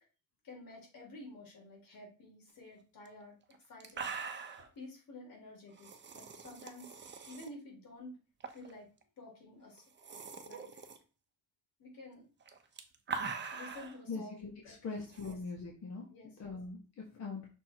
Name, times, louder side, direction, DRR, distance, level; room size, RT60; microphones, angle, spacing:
voice 1, 0.4-3.3 3.7-4.1 4.7-5.9 6.1-7.0 7.3-8.2 8.5-8.9 9.2-9.8 10.4-10.7 11.8-12.3 13.5-15.0 15.2-15.3 16.1-16.5, left 2 dB, 70° left, -1 dB, 3.4 m, -51 dB
sound 1, 3.1-3.2 3.5-3.6 3.8-4.7 5.8-7.5 8.4-8.7 9.0-9.1 9.8-11.0 12.4-14.0 15.1-15.3, right 5 dB, 30° right, 0.8 m, -42 dB
voice 2, 14.1-16.1 16.4-17.5, left 4 dB, 50° left, -2 dB, 1.5 m, -42 dB
6.2 x 3.6 x 4.5 m, 0.34 s
cardioid pair, 145°, 36 cm